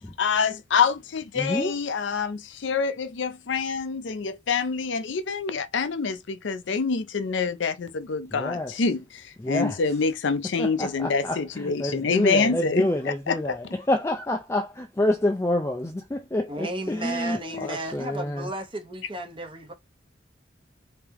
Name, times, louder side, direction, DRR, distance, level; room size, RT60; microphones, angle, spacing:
voice 1, 0.2-13.7 17.3-17.7, left 5 dB, 70° left, 0.5 m, -26 dB
voice 2, 1.4-1.7 8.4-8.7 9.4-9.7 10.6-11.4 11.8-13.5 13.9-18.4, left 1 dB, 15° left, 0.4 m, -27 dB
voice 3, 16.5-19.7, right 2 dB, 25° right, 0.9 m, -34 dB
3.4 x 2.9 x 3.5 m
head